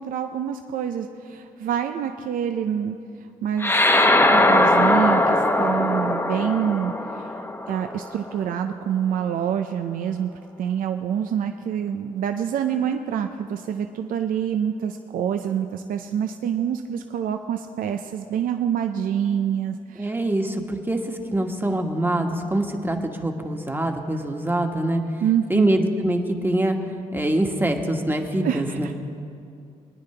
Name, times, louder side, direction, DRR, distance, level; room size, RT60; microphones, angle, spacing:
voice 1, 0.0-3.0 3.4-3.9 4.3-10.3 10.6-20.1 25.2-25.7 28.4-28.9, right 8 dB, 70° right, 6 dB, 0.5 m, -26 dB
sound 1, 3.6-8.3, left 1 dB, 15° left, 0.9 m, -20 dB
voice 2, 20.0-25.0 25.5-26.8 27.1-29.0, right 1 dB, 15° right, 4 dB, 1.4 m, -24 dB
22.5 x 9.8 x 3.3 m, 2.5 s
supercardioid pair, 55°, 15 cm